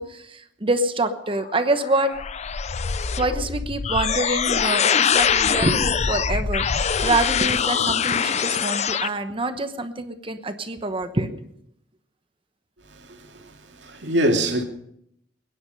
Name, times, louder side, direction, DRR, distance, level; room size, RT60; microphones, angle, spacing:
voice 1, 0.0-2.1 3.2-11.5, right 2 dB, 30° right, 1.0 m, -26 dB
sound 1, 1.4-9.1, left 7 dB, 40° left, 0.5 m, -23 dB
voice 2, 12.8-14.6, right 1 dB, 75° right, 2.6 m, -25 dB
22.0 x 10.5 x 5.3 m
head